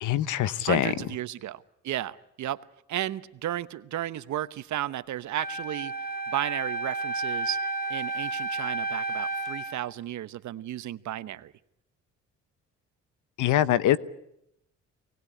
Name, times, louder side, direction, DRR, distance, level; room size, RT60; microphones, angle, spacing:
voice 1, 0.0-0.9 13.4-14.0, left 12 dB, 80° left, 16 dB, 1.1 m, -23 dB
voice 2, 0.6-5.9 6.3-7.6 7.9-11.5, right 13 dB, 70° right, 15 dB, 1.0 m, -33 dB
Wind instrument woodwind instrument, 5.4-9.8, right 2 dB, 30° left, 3.0 m, -31 dB
24.0 x 19.5 x 9.8 m, 0.80 s
cardioid pair, 90°, 30 cm